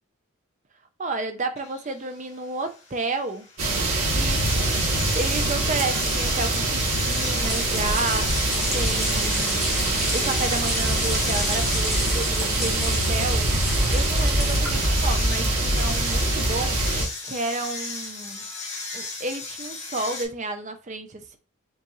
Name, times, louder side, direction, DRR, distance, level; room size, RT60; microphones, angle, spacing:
voice 1, 1.0-3.5 4.1-4.5 5.1-8.5 8.7-9.8 10.1-13.5 13.9-17.0 17.2-18.5 18.9-21.4, right 3 dB, 35° right, 0.6 m, -31 dB
sound 1, 1.6-20.3, left 4 dB, 30° left, 1.4 m, -37 dB
sound 2, 3.6-17.0, right 2 dB, 90° right, 1.7 m, -24 dB
sound 3, 7.2-15.0, left 1 dB, ahead, 0.9 m, -32 dB
5.3 x 2.5 x 3.1 m
head